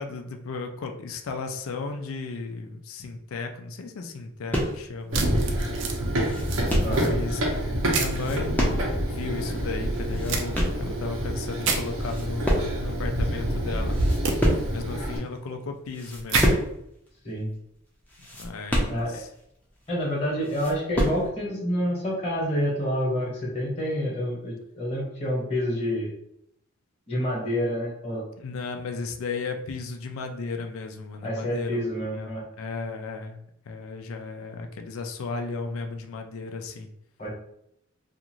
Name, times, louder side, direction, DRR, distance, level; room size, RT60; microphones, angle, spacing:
voice 1, 0.0-5.5 6.9-7.4 7.8-8.7 9.1-14.0 14.7-16.5 18.3-19.3 28.4-36.9, left 4 dB, 80° left, 5 dB, 0.4 m, -35 dB
sound 1, 4.5-5.0 5.5-5.6 5.9-7.1 8.0-9.1 9.4-9.5 9.9-10.9 11.5-11.7 12.0-13.0 13.3-13.4 13.8-14.9 15.4-15.5 15.9-16.8 17.1-17.2 17.5-17.6 18.1-19.4 19.9-20.0 20.3-21.3, equal, 10° left, 0.5 m, -27 dB
sound 2, 5.1-6.0 6.4-7.1 7.9-8.2 10.3-10.4 11.6-11.8 14.2-14.3 16.3-16.5, right 4 dB, 60° right, 0.4 m, -27 dB
Run, 5.1-15.2, right 1 dB, 90° right, 0.8 m, -27 dB
voice 2, 6.8-7.2 17.2-17.5 18.9-19.2 19.9-26.1 27.1-28.2 31.2-32.4 37.2-37.3, equal, 30° left, -4 dB, 1.0 m, -28 dB
2.5 x 2.4 x 2.9 m, 0.74 s
head